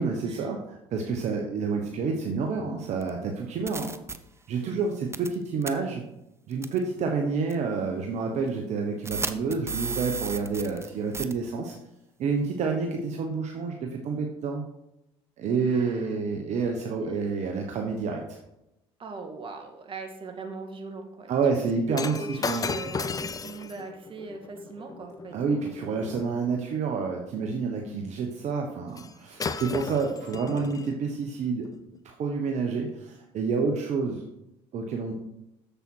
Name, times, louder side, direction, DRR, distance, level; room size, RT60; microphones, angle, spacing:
voice 1, 0.0-3.9 4.5-6.0 6.5-11.7 12.2-14.6 15.4-18.4 21.3-22.7 25.3-31.7 32.0-34.2 34.7-35.1, right 4 dB, 60° right, 2 dB, 1.1 m, -29 dB
sound 1, 3.0-3.1 3.7-4.2 5.1-5.4 5.6-5.7 6.6-6.8 7.5-7.6 9.1-10.9 11.1-11.3, right 4 dB, 20° right, 0.7 m, -32 dB
voice 2, 15.7-16.1 16.7-16.8 17.2-17.5 19.0-25.4 29.9-30.3, right 3 dB, 40° right, 4 dB, 1.8 m, -41 dB
Shatter, 21.9-26.3 29.0-29.1 29.4-30.9 31.6-31.8, left 5 dB, 30° left, 0.6 m, -35 dB
7.4 x 6.8 x 4.6 m, 0.87 s
supercardioid pair, 75°, 13 cm